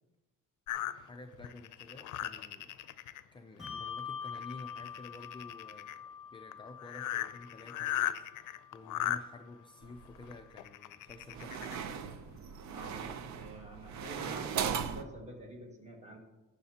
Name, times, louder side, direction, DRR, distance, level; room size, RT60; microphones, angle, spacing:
sound 1, 0.7-3.2 3.7-4.0 4.3-6.0 6.5-6.6 6.8-9.2 10.2-11.8 12.3-12.4 12.8-12.9, left 12 dB, 70° left, 0.5 m, -37 dB
voice 1, 0.9-2.7 3.3-5.9 6.3-11.8, left 2 dB, 15° left, 4 dB, 0.4 m, -51 dB
Bell, 3.6-10.5, left 7 dB, ahead, 2.1 m, -46 dB
sound 2, 9.8-10.4 11.1-15.0, right 7 dB, 60° right, 0.6 m, -38 dB
voice 2, 12.6-16.2, right 1 dB, 20° right, 1 dB, 1.7 m, -48 dB
18.5 x 6.6 x 2.8 m, 1.1 s
cardioid pair, 175°, 32 cm